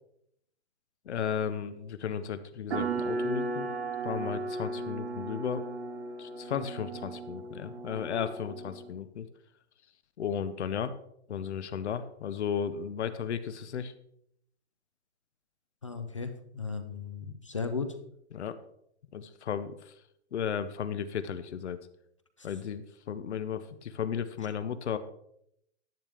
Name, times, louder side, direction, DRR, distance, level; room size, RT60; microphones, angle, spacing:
voice 1, 1.1-3.7 4.0-5.7 6.2-9.3 10.2-10.9 11.3-13.9 18.3-18.5 19.1-19.9 20.3-21.8 22.4-25.0, left 8 dB, 75° left, 12 dB, 0.9 m, -34 dB
sound 1, 2.7-8.9, right 3 dB, 70° right, 1.6 m, -35 dB
voice 2, 15.8-17.9 22.4-22.5, left 4 dB, 30° left, 9 dB, 0.5 m, -36 dB
10.5 x 10.0 x 3.5 m, 0.75 s
hypercardioid pair, 180°, 34 cm